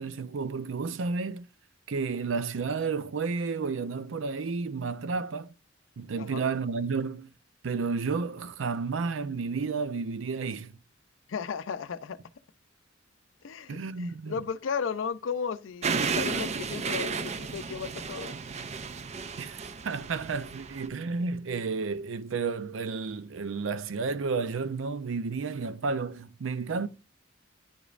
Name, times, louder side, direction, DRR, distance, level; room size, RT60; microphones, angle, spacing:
voice 1, 0.0-1.5 1.9-5.5 6.0-7.3 7.6-10.7 13.7-14.3 19.4-26.9, right 4 dB, 85° right, 0.5 m, -31 dB
voice 2, 11.3-12.2 13.4-18.3, left 6 dB, 80° left, 0.5 m, -35 dB
sound 1, 15.8-20.9, right 5 dB, 35° right, 0.4 m, -33 dB
9.6 x 5.1 x 2.4 m
head